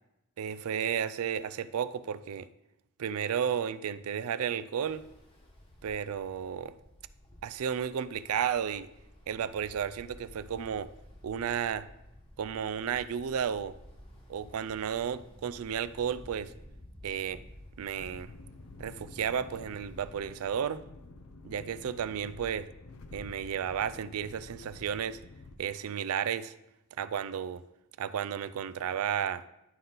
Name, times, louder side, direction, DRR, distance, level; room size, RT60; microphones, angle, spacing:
voice 1, 0.4-2.5 3.0-5.0 5.8-6.7 7.4-8.9 9.3-10.9 11.2-11.9 12.4-13.7 14.3-16.5 17.0-17.4 17.8-18.3 18.8-20.8 21.4-22.7 23.1-25.2 25.6-26.5 27.0-27.6 28.0-29.4, right 8 dB, 75° right, 14 dB, 0.4 m, -33 dB
Ocean, 4.8-20.2, equal, 25° left, 1.2 m, -53 dB
sound 1, 17.9-25.6, left 2 dB, 85° left, 0.7 m, -49 dB
11.0 x 4.0 x 3.8 m, 0.87 s
head